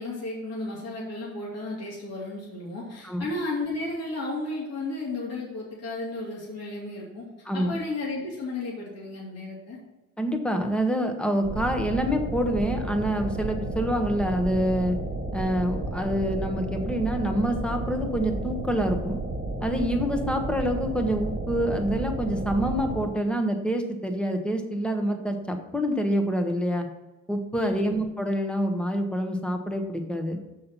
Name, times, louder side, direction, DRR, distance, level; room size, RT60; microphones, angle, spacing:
voice 1, 0.0-7.2 7.5-9.8 27.6-27.9, left 2 dB, 55° left, -5 dB, 2.9 m, -33 dB
voice 2, 10.2-15.0 15.3-19.2 19.6-26.9 27.3-30.4, equal, 5° left, 4 dB, 1.2 m, -26 dB
sound 1, 11.4-23.1, right 2 dB, 30° right, 2.1 m, -32 dB
6.5 x 5.5 x 6.0 m, 1.1 s
cardioid pair, 90°, 30 cm